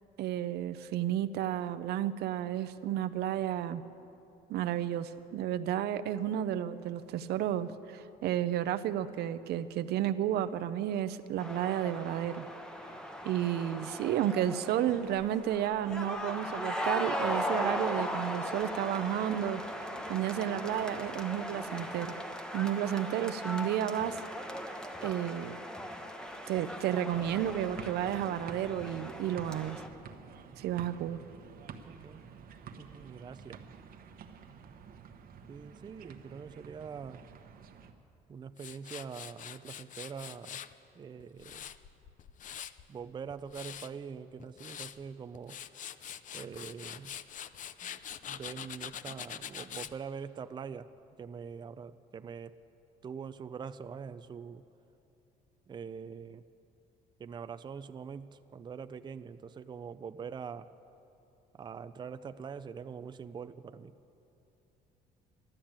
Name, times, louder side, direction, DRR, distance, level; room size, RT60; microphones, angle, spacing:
voice 1, 0.2-3.8 4.5-12.5 13.2-19.6 20.1-22.1 22.5-24.2 25.0-25.5 26.5-29.8 30.6-31.2, right 11 dB, 75° right, 11 dB, 0.6 m, -32 dB
sound 1, 11.4-29.9, equal, 5° left, 1.1 m, -38 dB
sound 2, 27.1-37.9, right 6 dB, 60° right, 1.1 m, -50 dB
voice 2, 31.9-32.2 32.8-33.6 35.5-37.2 38.3-40.6 41.0-41.6 42.9-45.6 46.3-47.1 47.8-48.0 48.3-50.9 51.2-52.6 53.0-54.6 55.7-56.4 57.2-60.7 61.5-63.9, right 6 dB, 25° right, 11 dB, 0.5 m, -44 dB
Tools, 38.6-40.7 41.2-42.9 43.3-43.9 44.4-45.0 45.3-49.9, left 9 dB, 50° left, 0.5 m, -44 dB
13.0 x 12.0 x 8.8 m, 2.9 s
cardioid pair, 110°, 17 cm